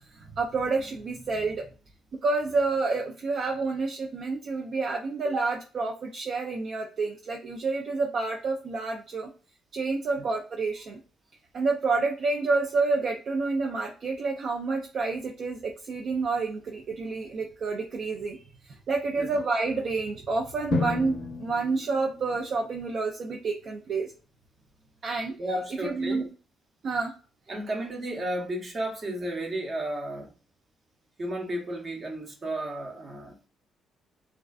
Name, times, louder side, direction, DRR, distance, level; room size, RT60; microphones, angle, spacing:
voice 1, 0.2-1.6 2.2-9.3 9.7-11.0 11.5-18.4 18.7-21.1 21.4-24.1 25.0-25.3 25.8-26.3 26.8-27.1, right 3 dB, 60° right, 0.3 m, -29 dB
Drum, 20.7-22.6, left 4 dB, 70° left, 0.5 m, -32 dB
voice 2, 25.4-26.3 27.5-30.3 31.2-33.5, right 1 dB, 40° right, 0.8 m, -33 dB
2.4 x 2.3 x 2.2 m
cardioid pair, 90°, 0 cm